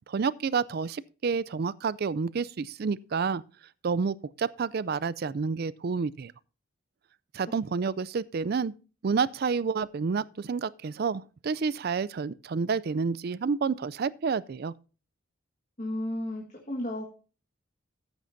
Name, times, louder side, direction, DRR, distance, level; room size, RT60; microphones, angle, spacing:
voice 1, 0.1-3.4 3.8-6.3 7.3-8.7 9.0-14.7, right 5 dB, 45° right, 0.4 m, -29 dB
voice 2, 15.8-17.1, left 1 dB, 35° left, 1.6 m, -33 dB
13.5 x 9.3 x 2.6 m
head